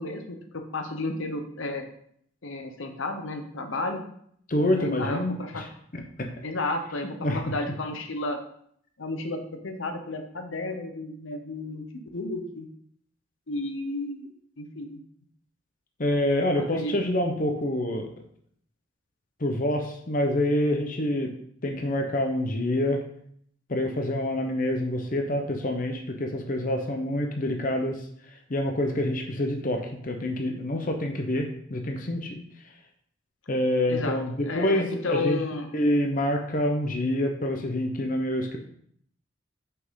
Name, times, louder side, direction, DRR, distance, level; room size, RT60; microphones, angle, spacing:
voice 1, 0.0-1.8 2.4-4.0 4.6-5.6 6.4-7.2 7.4-8.4 9.0-11.8 12.1-12.7 13.5-14.3 14.6-15.0 16.6-16.9 33.9-34.2 34.4-35.7, left 2 dB, 75° left, 5 dB, 0.9 m, -32 dB
voice 2, 4.5-5.6 5.9-6.3 7.2-7.5 16.0-18.1 19.4-21.3 21.6-23.0 23.7-28.0 28.5-32.4 33.5-35.4 35.7-38.6, left 1 dB, 40° left, 3 dB, 0.8 m, -27 dB
6.1 x 6.0 x 3.7 m, 0.65 s
head